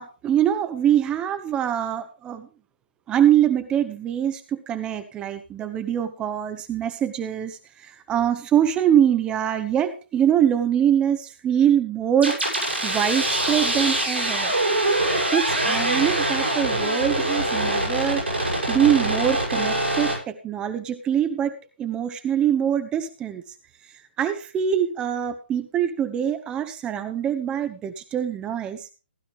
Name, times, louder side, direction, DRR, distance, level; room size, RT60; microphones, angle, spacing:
voice 1, 0.0-2.5 3.1-14.5 15.3-18.2 18.7-23.4 24.2-28.9, right 9 dB, 15° right, 10 dB, 0.7 m, -24 dB
sound 1, 12.2-20.1, right 1 dB, 90° right, 7.9 m, -24 dB
15.5 x 11.5 x 3.5 m, 0.32 s
figure-of-eight pair, 130°, 6 cm